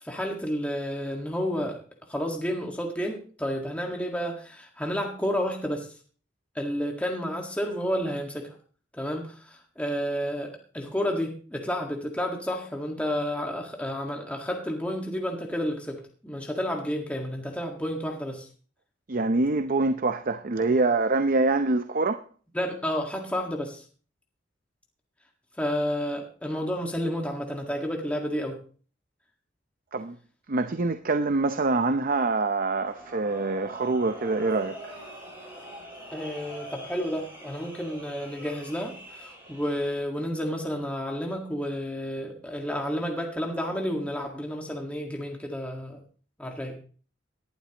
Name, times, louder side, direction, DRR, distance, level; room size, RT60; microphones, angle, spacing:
voice 1, 0.0-1.8 2.1-5.9 6.6-8.6 8.9-18.5 22.6-23.8 25.6-28.6 36.1-46.0 46.4-46.8, equal, 5° left, 1.7 m, -31 dB
voice 2, 19.1-22.2 29.9-30.2 30.5-35.0, right 3 dB, 45° right, 0.7 m, -25 dB
sound 1, 32.8-40.0, right 1 dB, 10° right, 7.4 m, -43 dB
18.5 x 11.5 x 3.0 m
head